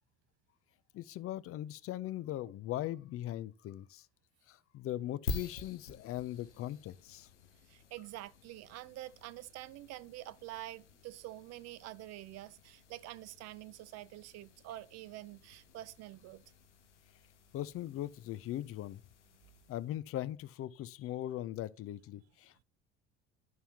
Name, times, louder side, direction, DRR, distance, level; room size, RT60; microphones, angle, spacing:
voice 1, 0.9-4.1 4.5-7.3 17.5-19.0 19.7-22.6, left 13 dB, 40° left, 0.5 m, -40 dB
sound 1, 5.3-20.0, left 4 dB, 90° left, 0.7 m, -49 dB
voice 2, 7.7-16.5, right 15 dB, 50° right, 0.5 m, -47 dB
11.0 x 5.6 x 2.9 m
figure-of-eight pair, 60°, 34 cm